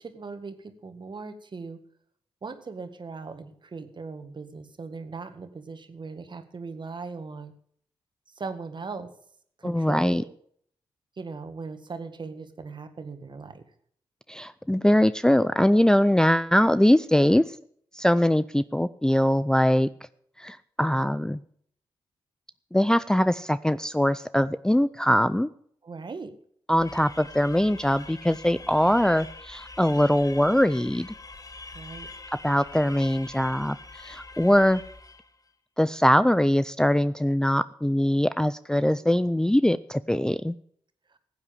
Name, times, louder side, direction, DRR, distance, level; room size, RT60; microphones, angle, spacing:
voice 1, 0.0-1.8 2.4-7.5 8.4-9.1 9.6-10.4 11.2-13.7 25.8-26.4 31.7-32.1 41.1-41.2, right 4 dB, 50° right, 9 dB, 1.8 m, -39 dB
voice 2, 9.6-10.2 14.3-17.4 17.9-19.9 20.4-21.4 22.7-25.5 26.7-31.1 32.4-33.8 34.0-34.8 35.8-40.5, equal, 5° left, 14 dB, 0.5 m, -22 dB
sound 1, 26.8-35.4, left 3 dB, 35° left, 1.2 m, -44 dB
15.0 x 8.3 x 7.2 m, 0.63 s
supercardioid pair, 45°, 10 cm